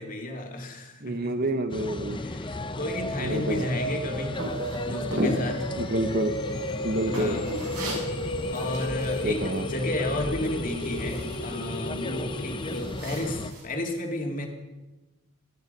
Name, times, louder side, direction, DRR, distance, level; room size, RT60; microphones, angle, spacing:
voice 1, 0.0-1.5 2.1-4.4 4.8-5.7 7.0-7.6 8.5-14.5, left 1 dB, 35° left, 2 dB, 2.4 m, -32 dB
voice 2, 1.0-2.2 3.2-3.7 5.8-6.4 6.8-7.4 9.2-9.7, right 1 dB, 45° right, 9 dB, 1.0 m, -28 dB
sound 1, 1.7-13.5, left 2 dB, 20° left, 0.6 m, -36 dB
sound 2, 2.8-12.8, equal, 75° left, 4.1 m, -35 dB
sound 3, 4.3-13.6, equal, 75° right, 7.5 m, -37 dB
26.0 x 10.5 x 5.4 m, 1.1 s
head